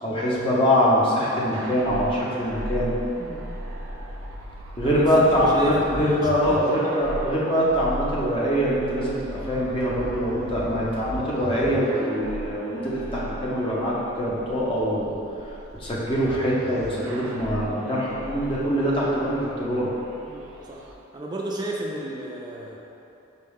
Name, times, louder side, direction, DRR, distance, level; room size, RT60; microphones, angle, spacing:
voice 1, 0.0-3.0 4.8-15.2 15.8-19.9, equal, 25° left, -6 dB, 0.6 m, -23 dB
sound 1, 1.5-20.9, right 1 dB, 85° right, 0.5 m, -37 dB
voice 2, 4.8-6.6 6.9-7.0 20.3-20.8 21.1-22.8, right 1 dB, 20° right, -2 dB, 0.4 m, -33 dB
5.3 x 2.2 x 3.5 m, 2.8 s
head